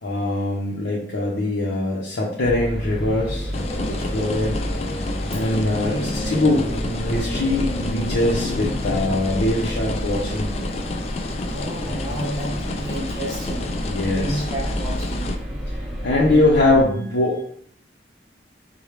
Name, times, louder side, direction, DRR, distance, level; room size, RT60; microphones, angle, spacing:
voice 1, 0.0-3.5 3.9-4.6 5.3-6.7 6.9-10.5 13.8-14.4 16.0-17.4, left 2 dB, 80° left, -5 dB, 0.7 m, -22 dB
sound 1, 2.4-16.8, equal, ahead, 0.7 m, -30 dB
sound 2, 3.5-15.4, left 2 dB, 35° left, 0.3 m, -30 dB
voice 2, 5.5-6.1 11.4-13.7 14.1-15.3 16.1-16.4, right 1 dB, 20° right, -5 dB, 1.1 m, -31 dB
4.8 x 2.2 x 3.2 m, 0.62 s
head